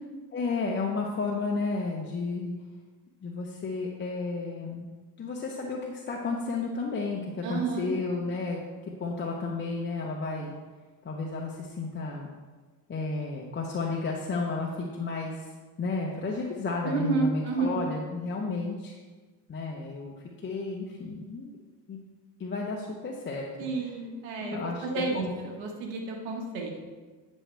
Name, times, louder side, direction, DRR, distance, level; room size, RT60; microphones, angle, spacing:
voice 1, 0.3-2.5 3.2-4.9 5.2-8.6 9.0-10.5 11.0-12.3 12.9-15.5 15.8-19.0 19.5-20.1 20.4-21.6 21.9-22.0 22.4-23.9 24.4-25.3, left 3 dB, 25° left, -2 dB, 0.9 m, -32 dB
voice 2, 7.4-7.9 16.8-17.8 23.6-26.8, right 4 dB, 85° right, 0 dB, 1.5 m, -31 dB
9.7 x 6.3 x 3.4 m, 1.3 s
cardioid pair, 105°, 41 cm